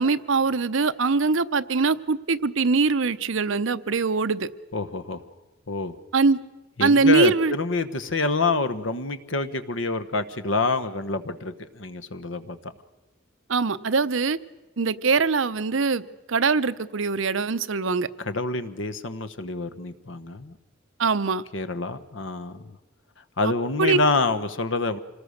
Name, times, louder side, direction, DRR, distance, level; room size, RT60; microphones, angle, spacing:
voice 1, 0.0-4.5 6.1-6.4 6.8-7.5 13.5-14.4 14.8-16.0 16.3-18.1 21.0-21.4 23.4-23.5 23.8-24.0, right 4 dB, 70° right, 13 dB, 0.7 m, -22 dB
voice 2, 4.7-5.2 5.7-5.9 6.8-12.7 18.2-20.6 21.5-22.8 23.4-25.0, left 3 dB, 65° left, 10 dB, 1.2 m, -27 dB
26.5 x 19.5 x 6.5 m, 1.1 s
head